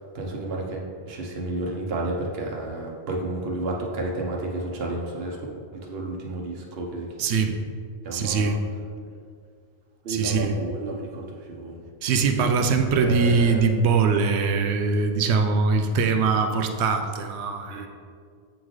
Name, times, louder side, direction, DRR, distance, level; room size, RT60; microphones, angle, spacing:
voice 1, 0.1-5.4 5.8-7.1 8.0-8.6 10.0-11.9 12.3-12.5 13.0-13.7 17.7-17.9, right 2 dB, 65° right, 0 dB, 1.1 m, -31 dB
voice 2, 7.2-7.6 8.1-8.6 10.1-10.6 12.0-17.9, right 4 dB, 90° right, 6 dB, 0.9 m, -22 dB
8.2 x 3.8 x 3.1 m, 2.2 s
omnidirectional pair, 1.1 m